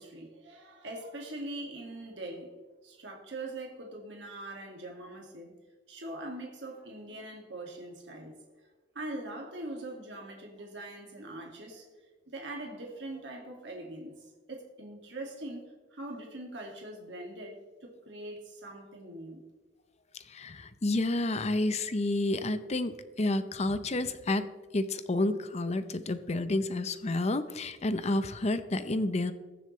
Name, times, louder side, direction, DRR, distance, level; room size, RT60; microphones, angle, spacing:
voice 1, 0.0-2.5 2.8-5.5 5.9-8.3 8.9-11.8 12.3-15.6 15.9-19.4, right 1 dB, 75° right, 0 dB, 2.1 m, -42 dB
voice 2, 20.3-24.5 24.7-29.3, left 2 dB, 35° left, 11 dB, 0.7 m, -30 dB
21.0 x 7.1 x 3.2 m, 1.3 s
head